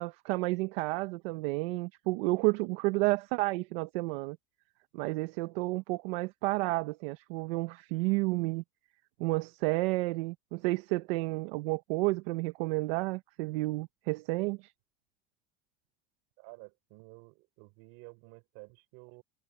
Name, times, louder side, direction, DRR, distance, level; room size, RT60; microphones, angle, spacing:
voice 1, 0.0-4.4 4.9-8.6 9.2-14.7, right 22 dB, 85° right, 0.9 m, -31 dB
voice 2, 16.4-19.2, right 28 dB, 65° right, 3.9 m, -52 dB
cardioid pair, 160°, 29 cm